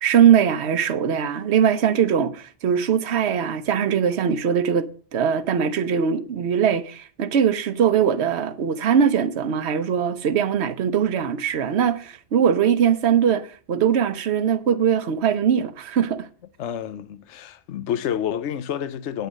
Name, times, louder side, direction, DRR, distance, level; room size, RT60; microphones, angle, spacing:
voice 1, 0.0-16.3, right 8 dB, 70° right, 1.1 m, -21 dB
voice 2, 16.6-19.3, left 9 dB, 80° left, 1.0 m, -29 dB
9.3 x 9.1 x 6.4 m
omnidirectional pair, 1.2 m